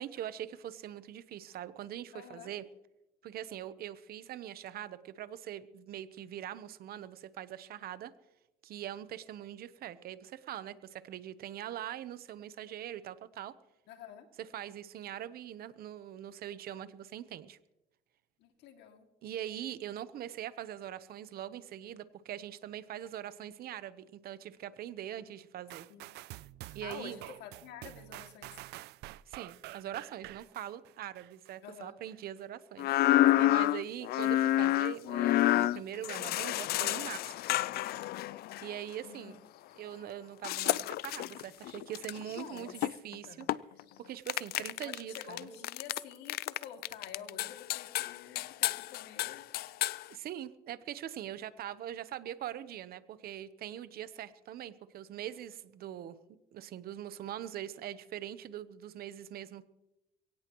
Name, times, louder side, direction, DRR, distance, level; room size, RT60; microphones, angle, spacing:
voice 1, 0.0-2.6 3.2-8.1 8.6-13.5 14.4-17.6 19.2-25.9 26.7-27.2 29.3-32.9 33.3-37.4 38.6-39.4 39.8-43.5 44.0-45.5 50.1-56.2 56.5-59.6, right 11 dB, 65° right, 14 dB, 1.0 m, -42 dB
voice 2, 2.1-2.5 13.9-14.3 18.4-19.1 25.9-26.1 26.6-28.6 31.6-31.9 39.0-39.4 42.3-42.7 43.3-43.5 44.5-49.5, left 8 dB, 85° left, 5 dB, 2.5 m, -48 dB
sound 1, 25.7-31.5 32.1-32.2, right 17 dB, 80° right, 0.5 m, -48 dB
sound 2, 32.8-38.7 40.4-43.8 44.3-46.0 46.3-50.0, left 15 dB, 70° left, 0.4 m, -29 dB
23.0 x 17.5 x 3.1 m, 0.95 s
cardioid pair, 110°, 17 cm